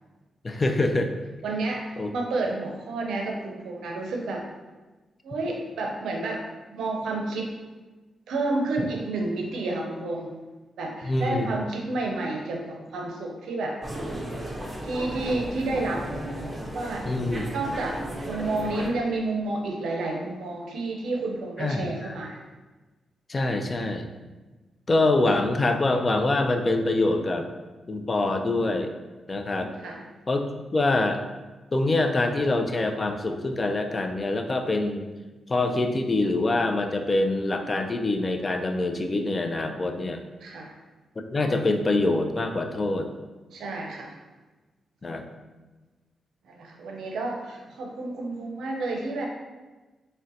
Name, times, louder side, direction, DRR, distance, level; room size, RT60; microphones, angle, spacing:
voice 1, 0.4-1.1 2.0-2.1 11.0-11.5 17.1-17.5 21.6-22.2 23.3-24.1 24.9-27.5 27.9-28.9 29.3-29.7 30.3-30.5 30.7-31.2 31.7-35.1 35.5-40.2 41.3-43.1 45.0-45.3, left 2 dB, 35° left, 6 dB, 0.3 m, -25 dB
voice 2, 1.4-4.5 5.2-6.4 6.7-7.5 8.3-10.4 10.8-13.8 14.8-16.1 16.7-17.1 17.5-22.4 29.8-30.0 40.4-40.7 43.5-44.1 46.4-49.3, right 2 dB, 80° right, 1 dB, 0.5 m, -30 dB
sound 1, 13.8-18.9, right 1 dB, 25° right, 0.6 m, -34 dB
3.7 x 2.1 x 2.6 m, 1.2 s
supercardioid pair, 55°, 0 cm